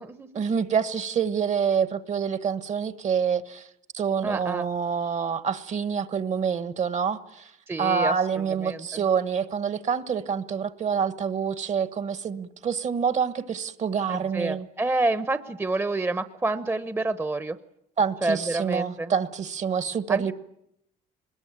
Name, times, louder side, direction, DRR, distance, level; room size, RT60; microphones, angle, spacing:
voice 1, 0.3-3.7 3.9-7.5 7.8-14.7 18.0-20.3, right 6 dB, 45° right, 14 dB, 1.3 m, -27 dB
voice 2, 4.2-4.7 7.7-9.0 14.1-17.6 18.2-19.1 20.1-20.3, right 2 dB, 15° right, 12 dB, 0.9 m, -28 dB
23.0 x 21.0 x 8.9 m, 0.78 s
cardioid pair, 110°, 17 cm